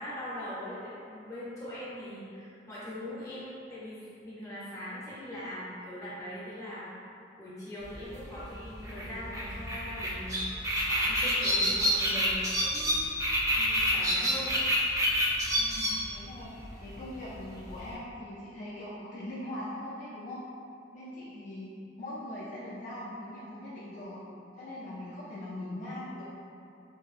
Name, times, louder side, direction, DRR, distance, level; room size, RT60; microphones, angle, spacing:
voice 1, 0.0-6.9 7.4-10.4 10.9-13.1 13.5-14.6, equal, 20° left, -9 dB, 0.8 m, -41 dB
sound 1, 7.8-17.9, equal, 20° right, 0.4 m, -28 dB
voice 2, 15.6-16.5 16.8-20.4 20.9-24.2 24.6-26.2, left 1 dB, 45° left, -8 dB, 0.4 m, -41 dB
2.8 x 2.6 x 2.4 m, 2.6 s
head